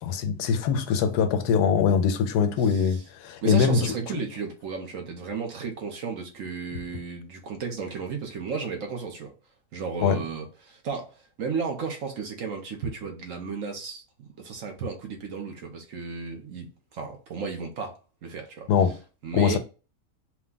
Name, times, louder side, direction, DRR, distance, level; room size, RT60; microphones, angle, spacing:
voice 1, 0.0-4.2 10.0-10.2 18.7-19.0 19.3-19.6, left 6 dB, 85° left, 1.2 m, -23 dB
voice 2, 2.6-3.0 3.4-9.3 9.7-14.0 14.4-18.7 19.2-19.6, right 5 dB, 60° right, 1.2 m, -34 dB
4.6 x 2.3 x 3.8 m
omnidirectional pair, 1.7 m